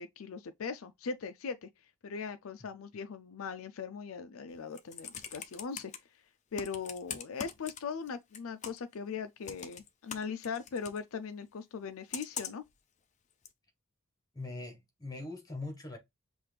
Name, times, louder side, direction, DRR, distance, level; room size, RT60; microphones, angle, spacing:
voice 1, 0.0-1.7 2.0-5.9 6.5-12.6, left 5 dB, 85° left, 0.5 m, -40 dB
Computer keyboard, 4.5-6.0 6.5-8.1 8.3-8.9 9.4-11.0 12.1-12.7 13.4-13.5, left 7 dB, 35° left, 0.6 m, -42 dB
voice 2, 14.3-16.0, left 2 dB, 20° left, 1.3 m, -41 dB
5.7 x 2.5 x 3.3 m
head